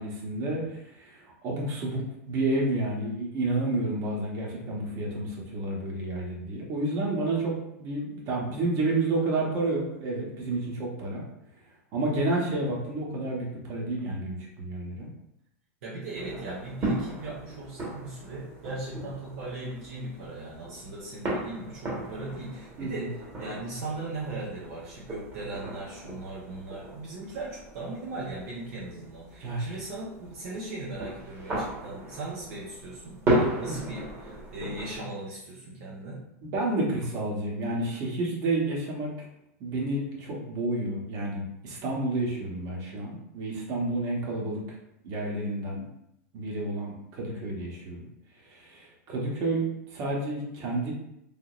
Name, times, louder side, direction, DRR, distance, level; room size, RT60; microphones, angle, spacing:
voice 1, 0.0-11.2 11.9-15.1 22.8-23.1 29.4-29.7 33.6-33.8 36.4-39.1 39.6-44.8 45.0-45.9 46.3-48.0 48.5-49.6 49.9-50.9, right 2 dB, 45° right, -2 dB, 1.1 m, -30 dB
voice 2, 15.8-36.2, right 2 dB, 65° right, -5 dB, 0.9 m, -38 dB
sound 1, 16.1-35.0, right 1 dB, 30° right, 1.2 m, -35 dB
3.5 x 2.8 x 2.4 m, 0.79 s
hypercardioid pair, 115°, 9 cm